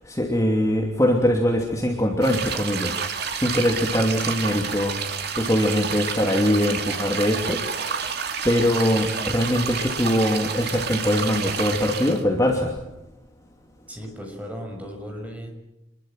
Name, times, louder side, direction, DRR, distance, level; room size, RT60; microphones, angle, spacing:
voice 1, 0.1-3.0 3.3-5.0 5.4-8.1 8.4-12.7, equal, 15° left, 1 dB, 2.8 m, -22 dB
sound 1, 2.2-12.2, right 6 dB, 55° right, 2.7 m, -29 dB
voice 2, 13.9-15.5, equal, 5° right, 2 dB, 6.5 m, -36 dB
27.0 x 22.0 x 7.8 m, 0.91 s
head